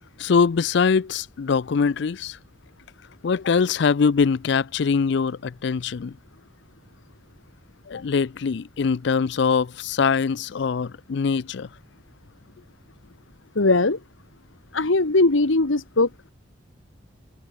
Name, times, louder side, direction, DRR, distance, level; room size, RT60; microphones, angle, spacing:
voice 1, 0.2-2.4 3.2-6.2 7.9-11.7, left 5 dB, 60° left, 0.4 m, -22 dB
voice 2, 13.5-14.0 14.7-16.1, left 2 dB, 80° left, 1.4 m, -19 dB
head